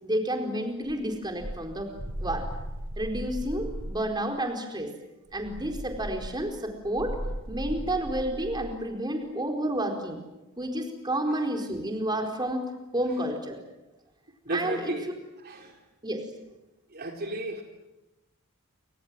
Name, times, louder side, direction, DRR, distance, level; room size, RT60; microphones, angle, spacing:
voice 1, 0.0-2.5 3.0-4.9 5.3-7.2 7.5-10.2 10.6-13.6 14.5-14.9 16.0-16.2, right 1 dB, 20° right, 3 dB, 4.5 m, -30 dB
sound 1, 0.9-4.1 5.3-8.8, equal, 85° right, 4.3 m, -37 dB
voice 2, 14.5-15.1 15.4-15.7 16.9-17.6, right 2 dB, 50° right, 2 dB, 3.7 m, -33 dB
29.0 x 26.0 x 7.7 m, 1.0 s
head